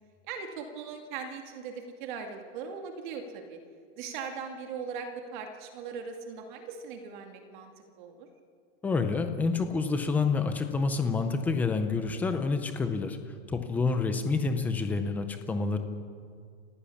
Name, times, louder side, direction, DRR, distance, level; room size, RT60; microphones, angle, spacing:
voice 1, 0.3-3.6 4.0-7.7 8.0-8.3 13.9-14.0, right 6 dB, 40° right, 4 dB, 2.2 m, -39 dB
voice 2, 8.8-13.2 13.5-15.8, left 4 dB, 5° left, 7 dB, 0.5 m, -28 dB
29.0 x 15.0 x 7.1 m, 2.2 s
supercardioid pair, 175°, 36 cm